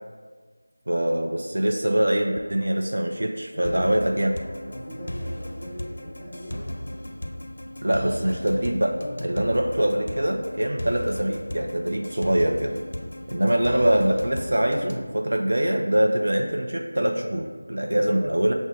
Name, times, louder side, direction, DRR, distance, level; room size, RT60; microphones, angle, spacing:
voice 1, 0.9-4.3 7.8-12.8 13.3-18.5, right 1 dB, 70° right, 2 dB, 0.4 m, -23 dB
voice 2, 3.5-4.1 4.7-6.6 17.8-18.2, equal, 5° right, -10 dB, 1.1 m, -39 dB
sound 1, 3.6-15.1, left 1 dB, 60° left, 0.4 m, -36 dB
5.2 x 2.0 x 4.8 m, 1.5 s
figure-of-eight pair, 175°, 0 cm